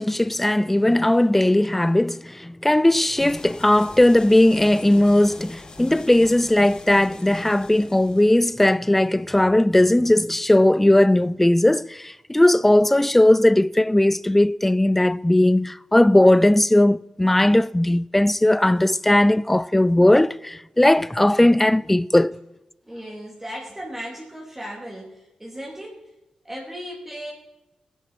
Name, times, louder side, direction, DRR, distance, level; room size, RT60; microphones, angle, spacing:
voice 1, 0.0-22.4, left 1 dB, 10° left, 0.3 m, -18 dB
sound 1, 3.2-8.7, left 3 dB, 40° left, 1.5 m, -44 dB
voice 2, 22.9-26.0 26.4-27.3, equal, 15° right, 2.8 m, -36 dB
18.5 x 10.0 x 4.4 m
cardioid pair, 80°, 2 cm